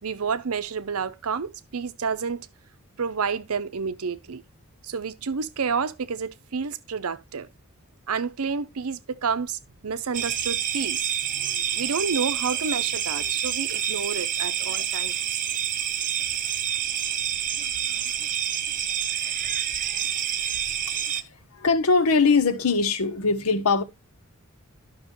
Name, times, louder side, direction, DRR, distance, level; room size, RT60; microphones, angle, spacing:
voice 1, 0.0-2.5 3.0-4.4 4.8-7.5 8.1-15.4, right 5 dB, 75° right, 0.7 m, -30 dB
sound 1, 10.1-21.2, right 9 dB, 40° right, 0.7 m, -28 dB
voice 2, 21.5-23.8, left 4 dB, 75° left, 1.0 m, -21 dB
12.0 x 6.1 x 3.0 m
head